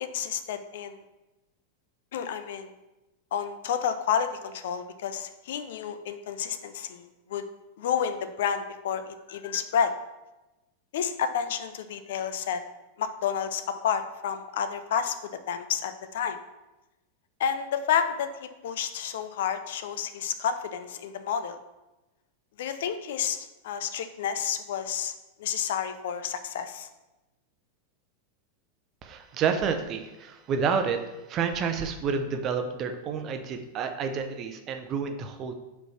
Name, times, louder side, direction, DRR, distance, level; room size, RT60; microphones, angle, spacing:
voice 1, 0.0-1.0 2.1-2.7 3.3-7.4 7.8-9.9 10.9-12.6 13.0-15.1 15.5-16.4 17.4-18.3 18.6-21.6 22.6-25.1 25.4-26.9, left 8 dB, 55° left, 10 dB, 0.5 m, -30 dB
voice 2, 29.0-31.0 31.3-35.5, right 6 dB, 35° right, 7 dB, 0.7 m, -29 dB
5.2 x 4.6 x 5.6 m, 1.0 s
figure-of-eight pair, 90°, 0 cm